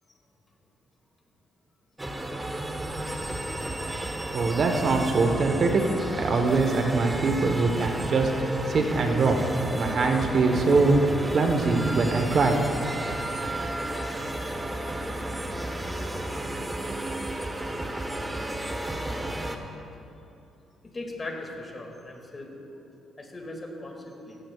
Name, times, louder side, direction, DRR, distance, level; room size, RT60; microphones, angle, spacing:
sound 1, 2.0-19.6, right 1 dB, 15° right, 1.0 m, -32 dB
voice 1, 4.3-5.8 6.1-8.3 8.7-9.4 9.7-11.0 11.3-12.6, right 3 dB, 55° right, 4 dB, 1.2 m, -23 dB
voice 2, 20.8-22.6 23.2-24.4, left 2 dB, 30° left, 1 dB, 2.2 m, -38 dB
16.5 x 14.5 x 2.4 m, 2.7 s
cardioid pair, 90°, 0 cm